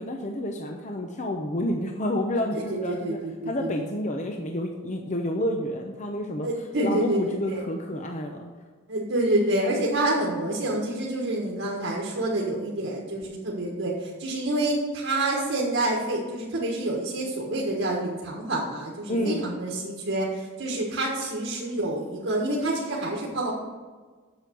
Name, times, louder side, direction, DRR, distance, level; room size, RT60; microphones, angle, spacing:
voice 1, 0.0-6.5 6.8-8.5 19.1-19.4, left 1 dB, 35° left, 2 dB, 0.8 m, -29 dB
voice 2, 2.9-3.5 3.8-3.9 6.4-7.6 8.9-23.5, right 1 dB, 70° right, -3 dB, 1.5 m, -27 dB
8.0 x 6.9 x 6.3 m, 1.4 s
head